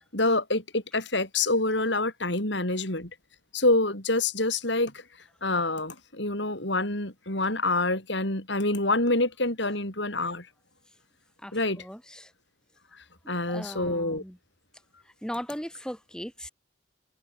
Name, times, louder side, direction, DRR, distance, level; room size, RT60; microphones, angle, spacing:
voice 1, 0.1-3.1 3.5-4.9 5.4-10.5 11.5-11.9 13.3-14.2, left 2 dB, 60° left, 7.1 m, -26 dB
voice 2, 11.4-12.3 13.5-14.4 15.2-16.5, equal, 5° left, 3.8 m, -38 dB
head